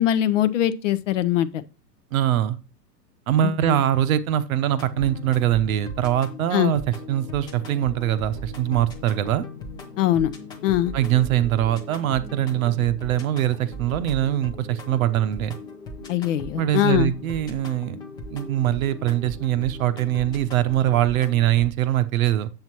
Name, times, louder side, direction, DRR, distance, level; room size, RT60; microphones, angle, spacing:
voice 1, 0.0-1.6 3.7-3.8 6.5-6.7 10.0-10.3 10.6-10.9 16.1-17.1, left 12 dB, 50° left, 0.7 m, -21 dB
voice 2, 2.1-2.6 3.3-6.8 7.1-9.4 10.9-15.6 16.6-18.0 18.3-22.5, right 12 dB, 55° right, 0.8 m, -22 dB
sound 1, 4.7-21.7, left 2 dB, 10° left, 0.5 m, -38 dB
7.6 x 7.2 x 2.9 m
hypercardioid pair, 130°, 49 cm